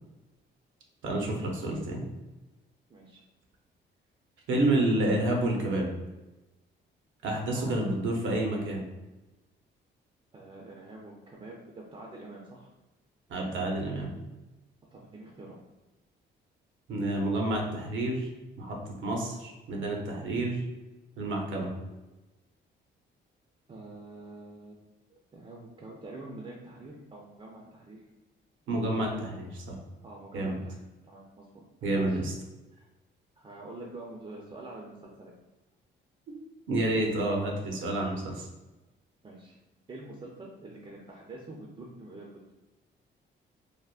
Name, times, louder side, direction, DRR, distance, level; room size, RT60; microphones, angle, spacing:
voice 1, 1.0-2.1 4.5-5.9 7.2-8.9 13.3-14.1 16.9-18.3 18.6-20.6 21.2-21.7 28.7-29.8 30.3-30.6 31.8-32.3 36.7-38.5, right 1 dB, 75° right, 0 dB, 0.7 m, -29 dB
voice 2, 2.9-3.2 7.5-7.9 10.3-12.7 14.9-15.6 23.7-24.7 25.3-28.0 30.0-30.8 31.0-31.6 32.0-32.2 32.7-32.9 33.4-35.3 39.2-39.6 39.9-42.5, right 2 dB, 30° right, -2 dB, 0.5 m, -46 dB
3.4 x 2.1 x 2.4 m, 1.1 s
cardioid pair, 90°, 20 cm